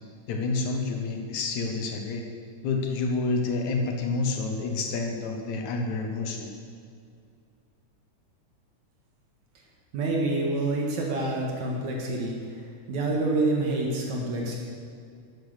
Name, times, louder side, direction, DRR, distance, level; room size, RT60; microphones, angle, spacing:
voice 1, 0.3-2.2 2.6-6.5, left 3 dB, 75° left, 2 dB, 2.6 m, -28 dB
voice 2, 9.9-12.3 12.9-14.6, right 2 dB, 75° right, -1 dB, 3.0 m, -27 dB
11.5 x 10.0 x 6.7 m, 2.3 s
omnidirectional pair, 3.3 m